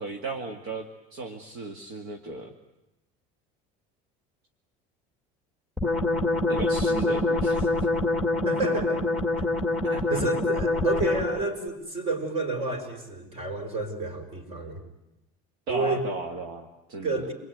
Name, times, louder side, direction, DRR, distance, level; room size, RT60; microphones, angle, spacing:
voice 1, 0.0-2.5 6.5-7.7 9.8-10.3 15.7-17.3, right 3 dB, 60° right, 4 dB, 2.2 m, -35 dB
sound 1, 5.8-11.5, left 2 dB, ahead, 1.9 m, -25 dB
voice 2, 8.4-9.1 9.4-9.5 10.1-14.8 15.7-16.0 17.0-17.3, right 3 dB, 35° right, 6 dB, 5.1 m, -30 dB
28.0 x 21.5 x 9.5 m, 0.94 s
cardioid pair, 155°, 17 cm